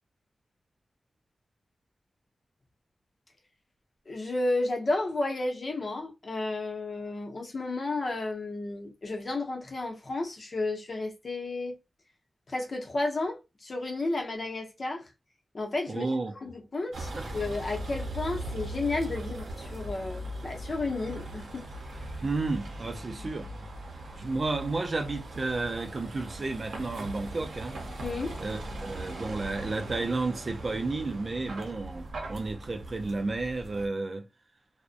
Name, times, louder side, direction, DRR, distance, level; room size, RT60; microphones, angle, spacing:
voice 1, 4.1-11.8 12.5-15.1 15.5-16.1 16.3-21.7 28.0-28.4, left 2 dB, 55° left, 0.7 m, -32 dB
voice 2, 15.9-16.3 17.1-17.2 22.2-23.5 24.1-27.8 28.4-34.3, right 3 dB, 45° right, 0.4 m, -32 dB
Vehicle, 16.9-33.9, right 1 dB, 90° right, 0.6 m, -39 dB
2.5 x 2.1 x 2.4 m
wide cardioid pair, 85°, 0 cm